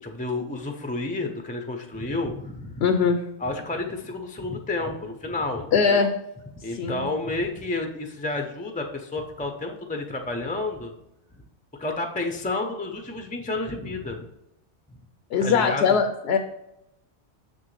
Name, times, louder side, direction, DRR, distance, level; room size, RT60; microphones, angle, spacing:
voice 1, 0.0-2.9 3.4-6.0 6.6-10.9 11.8-14.2 15.4-16.0, left 2 dB, 10° left, 4 dB, 0.4 m, -30 dB
voice 2, 2.8-3.2 5.7-6.1 6.7-7.0 15.3-16.4, left 6 dB, 70° left, 6 dB, 0.8 m, -21 dB
6.7 x 6.4 x 3.2 m, 0.85 s
omnidirectional pair, 1.2 m